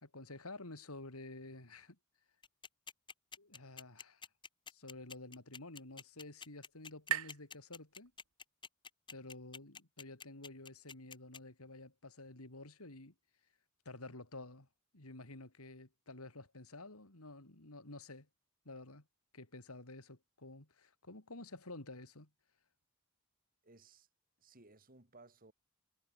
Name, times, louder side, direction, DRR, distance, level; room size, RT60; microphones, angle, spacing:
voice 1, 0.0-2.0 3.4-4.2 4.7-8.1 9.1-13.1 13.9-14.7 14.9-18.3 18.7-19.1 19.3-22.3, left 2 dB, 90° left, 3.6 m, -51 dB
sound 1, 2.4-11.4, left 6 dB, 20° left, 1.3 m, -49 dB
sound 2, 4.7-8.5, right 10 dB, 75° right, 0.6 m, -45 dB
voice 2, 23.6-24.1 24.4-25.5, right 3 dB, 40° right, 3.1 m, -60 dB
head